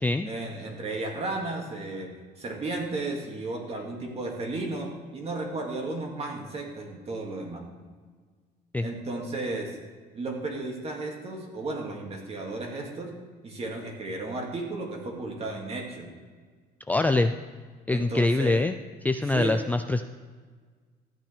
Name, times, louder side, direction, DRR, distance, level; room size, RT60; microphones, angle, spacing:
voice 1, 0.2-2.1 2.4-7.8 8.8-9.8 10.1-13.1 13.4-16.1 17.9-18.6 19.3-19.6, right 2 dB, 35° right, 1 dB, 2.3 m, -34 dB
voice 2, 16.9-17.3 17.9-18.8 19.0-20.0, left 2 dB, 10° left, 7 dB, 0.4 m, -24 dB
13.5 x 8.8 x 3.4 m, 1.5 s
cardioid pair, 110°, 17 cm